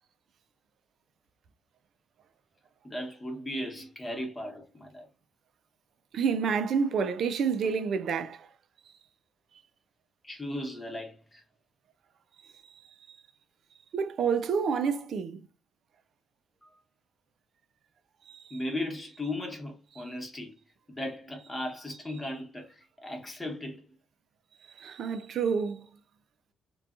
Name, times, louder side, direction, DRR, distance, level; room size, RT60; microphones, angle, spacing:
voice 1, 2.8-5.1 10.2-11.4 18.5-20.5 20.9-24.0, left 1 dB, 20° left, 1.0 m, -37 dB
voice 2, 6.1-8.5 12.8-12.9 13.9-15.4 18.3-18.6 24.7-25.9, right 6 dB, 65° right, 0.3 m, -29 dB
2.6 x 2.2 x 2.4 m
cardioid pair, 90°, 0 cm